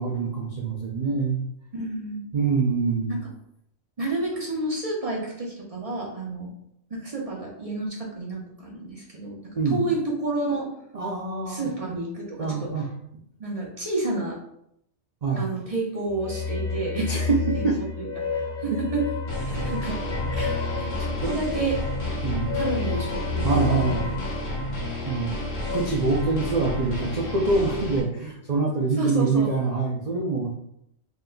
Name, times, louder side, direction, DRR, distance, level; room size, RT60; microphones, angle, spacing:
voice 1, 0.0-1.5 2.3-3.2 9.5-9.8 10.9-11.7 12.4-12.9 15.2-15.5 17.1-18.1 18.7-18.8 19.5-19.7 20.4-20.5 21.2-21.3 22.2-22.6 23.4-24.1 25.0-25.4 25.7-30.5, right 4 dB, 55° right, -3 dB, 0.4 m, -25 dB
voice 2, 1.7-2.2 3.1-3.2 4.0-6.5 6.9-10.7 11.5-12.7 13.4-14.4 15.4-17.1 17.5-19.0 19.4-20.0 20.3-21.8 22.5-24.1 29.0-29.5, right 2 dB, 30° right, -3 dB, 0.8 m, -30 dB
sound 1, 16.1-25.8, left 5 dB, 50° left, 0.8 m, -31 dB
sound 2, 19.3-28.0, left 1 dB, 70° left, 1.3 m, -31 dB
4.1 x 3.7 x 2.2 m, 0.76 s
omnidirectional pair, 1.4 m